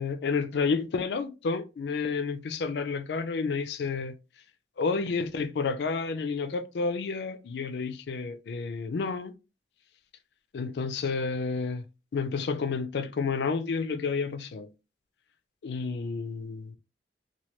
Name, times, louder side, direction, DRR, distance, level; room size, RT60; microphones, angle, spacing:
voice 1, 0.0-4.1 4.8-9.3 10.5-11.8 12.1-14.7 15.6-16.8, left 4 dB, 65° left, 0.3 m, -30 dB
3.1 x 2.2 x 2.9 m
head